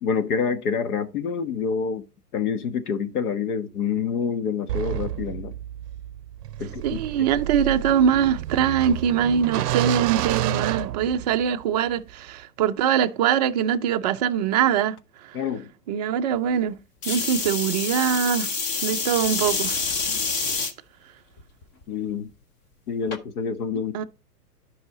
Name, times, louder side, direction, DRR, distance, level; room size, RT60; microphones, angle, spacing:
voice 1, 0.0-2.0 2.3-5.5 6.6-7.0 15.3-15.7 20.1-20.3 21.9-22.3 22.9-24.1, left 6 dB, 65° left, 1.5 m, -27 dB
sound 1, 4.7-11.6, right 14 dB, 75° right, 0.6 m, -29 dB
voice 2, 6.8-15.0 15.3-15.4 15.9-16.8 17.1-18.5 18.8-19.8 23.9-24.0, right 8 dB, 30° right, 0.4 m, -23 dB
sound 2, 17.0-20.7 21.4-21.8 23.1-23.2, left 4 dB, 25° left, 0.9 m, -27 dB
11.0 x 5.5 x 3.8 m
hypercardioid pair, 135°, 48 cm